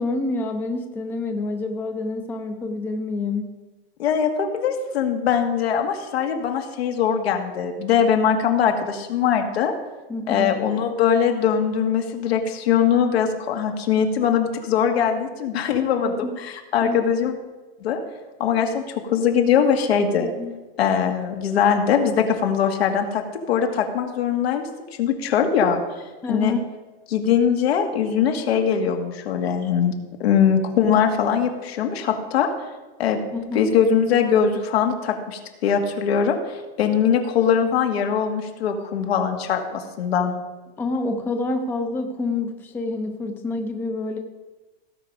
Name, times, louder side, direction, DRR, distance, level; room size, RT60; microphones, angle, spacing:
voice 1, 0.0-3.5 10.1-10.5 16.0-16.4 16.8-17.0 20.4-20.6 26.2-26.6 30.8-31.0 33.3-33.7 40.8-44.2, left 3 dB, 5° left, 5 dB, 0.4 m, -27 dB
voice 2, 4.0-9.7 10.3-17.3 17.8-18.0 18.4-20.3 20.8-24.7 25.0-25.8 26.3-26.6 27.1-29.9 30.2-32.5 33.0-33.2 33.5-40.3, left 7 dB, 90° left, 4 dB, 1.9 m, -21 dB
17.0 x 5.7 x 5.1 m, 1.2 s
supercardioid pair, 165°, 30 cm